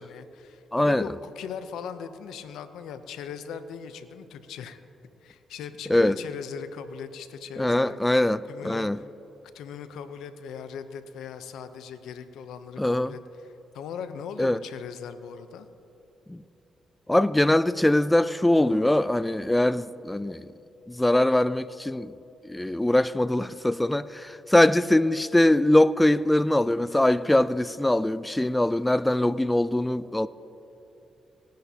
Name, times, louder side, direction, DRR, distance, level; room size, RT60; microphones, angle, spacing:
voice 1, 0.0-4.8 5.2-8.0 8.5-9.1 9.5-15.7, left 7 dB, 85° left, 0.6 m, -39 dB
voice 2, 0.7-1.0 5.9-6.2 7.6-9.0 12.8-13.1 14.4-14.6 16.3-16.4 17.1-20.5 20.9-22.1 22.5-30.3, left 1 dB, 10° left, 0.3 m, -22 dB
18.5 x 10.0 x 2.8 m
supercardioid pair, 65°, 0 cm